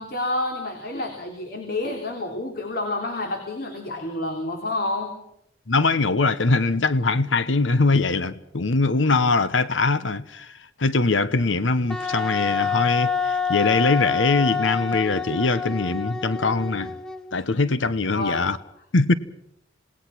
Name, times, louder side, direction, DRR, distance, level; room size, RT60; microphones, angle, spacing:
voice 1, 0.0-5.1 18.1-18.5, left 2 dB, 55° left, 3.6 m, -29 dB
voice 2, 5.7-16.9 17.3-18.6 18.9-19.1, left 3 dB, 85° left, 1.1 m, -22 dB
Wind instrument woodwind instrument, 11.9-17.4, left 5 dB, 5° left, 0.8 m, -27 dB
27.5 x 19.0 x 6.1 m
head